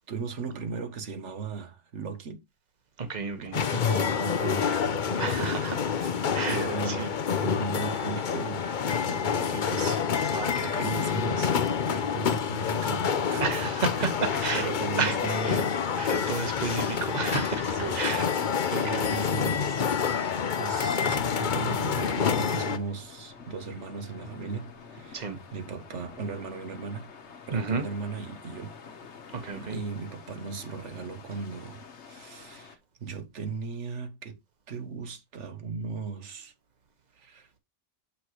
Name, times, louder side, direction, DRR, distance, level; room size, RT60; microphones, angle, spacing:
voice 1, 0.1-2.4 3.4-6.2 6.5-8.6 9.0-10.0 10.3-11.5 11.9-13.7 14.0-15.8 16.8-17.0 17.7-18.0 18.8-19.9 20.5-27.1 27.5-28.7 29.6-34.4 34.7-36.5 37.2-37.5, right 5 dB, 90° right, 1.4 m, -37 dB
voice 2, 3.0-3.6 5.2-5.8 6.3-7.1 10.3-10.9 13.4-14.7 15.0-15.2 15.5-15.6 16.0-18.3 18.7-19.3 25.1-25.4 27.5-27.8 29.3-29.8, right 5 dB, 40° right, 1.4 m, -32 dB
sound 1, 3.5-22.8, left 7 dB, 50° left, 0.8 m, -28 dB
sound 2, 21.9-32.8, left 5 dB, 75° left, 1.4 m, -48 dB
7.9 x 5.8 x 3.0 m
omnidirectional pair, 1.2 m